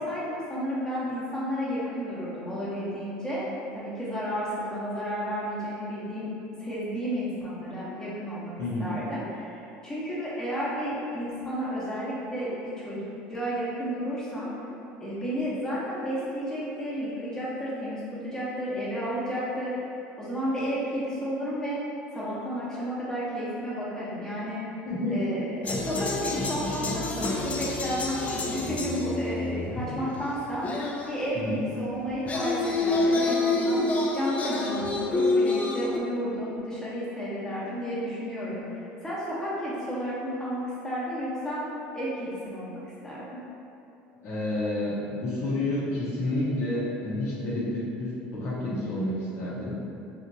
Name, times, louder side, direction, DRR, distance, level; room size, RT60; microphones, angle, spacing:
voice 1, 0.0-3.4 3.7-6.3 6.6-8.5 8.8-13.0 13.3-14.5 15.0-19.8 20.2-21.8 22.1-24.6 25.1-28.2 28.5-30.6 31.1-33.8 34.1-41.7 41.9-43.4, equal, 10° left, -9 dB, 0.9 m, -32 dB
voice 2, 24.9-25.2 31.3-31.6 44.2-49.8, left 1 dB, 55° left, -8 dB, 0.8 m, -29 dB
sound 1, 25.6-31.3 32.1-36.0, left 2 dB, 30° left, 0.4 m, -28 dB
2.9 x 2.4 x 2.6 m, 2.7 s
supercardioid pair, 90°, 5 cm